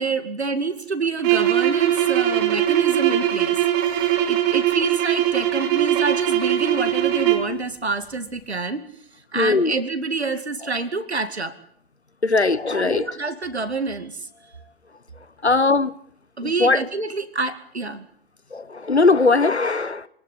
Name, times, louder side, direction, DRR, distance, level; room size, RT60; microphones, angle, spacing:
voice 1, 0.0-3.6 3.8-8.8 9.3-11.5 12.7-14.3 16.4-18.1, right 4 dB, 80° right, 10 dB, 2.4 m, -27 dB
sound 1, 1.2-7.6, right 12 dB, 35° right, 3.6 m, -21 dB
voice 2, 9.3-9.7 12.2-13.1 15.4-15.9 16.4-16.8 18.5-20.1, left 3 dB, 85° left, 19 dB, 1.2 m, -19 dB
26.5 x 19.0 x 8.5 m, 0.68 s
figure-of-eight pair, 105°, 32 cm